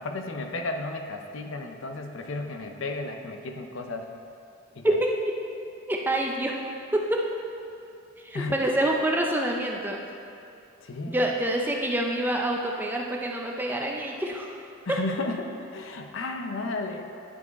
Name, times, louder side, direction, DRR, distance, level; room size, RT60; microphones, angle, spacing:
voice 1, 0.0-4.1 4.7-4.9 8.3-8.5 10.8-11.2 14.8-17.1, left 2 dB, 65° left, 5 dB, 0.6 m, -33 dB
voice 2, 4.8-5.3 5.9-6.5 6.9-7.2 8.2-10.0 11.1-14.6 14.9-15.0, right 1 dB, 10° right, 0 dB, 0.5 m, -26 dB
10.5 x 4.8 x 4.1 m, 2.6 s
head